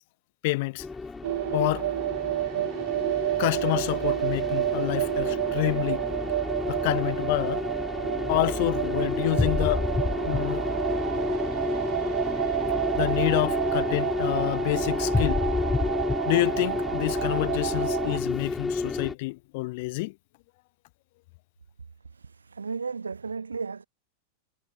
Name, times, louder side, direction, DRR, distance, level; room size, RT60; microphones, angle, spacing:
voice 1, 0.4-0.9 1.5-1.9 3.4-6.0 6.7-7.6 8.3-9.8 10.2-10.7 13.0-15.4 16.3-20.1, left 24 dB, 50° left, 1.3 m, -28 dB
sound 1, 0.8-19.1, left 3 dB, 10° left, 1.9 m, -30 dB
sound 2, 1.2-18.2, right 14 dB, 55° right, 2.2 m, -30 dB
voice 2, 22.1-23.9, right 5 dB, 75° right, 2.4 m, -34 dB
figure-of-eight pair, 90°, 0 cm